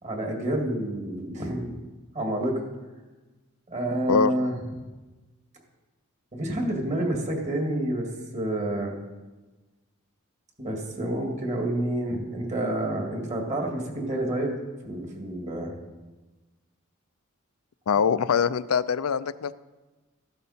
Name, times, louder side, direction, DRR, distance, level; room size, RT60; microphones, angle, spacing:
voice 1, 0.0-1.8 2.1-2.6 3.7-4.6 6.3-9.0 10.6-14.5 14.8-15.8, right 1 dB, 35° right, 1 dB, 2.3 m, -29 dB
voice 2, 17.9-19.5, left 6 dB, 90° left, 15 dB, 0.5 m, -23 dB
14.0 x 11.5 x 4.3 m, 1.2 s
head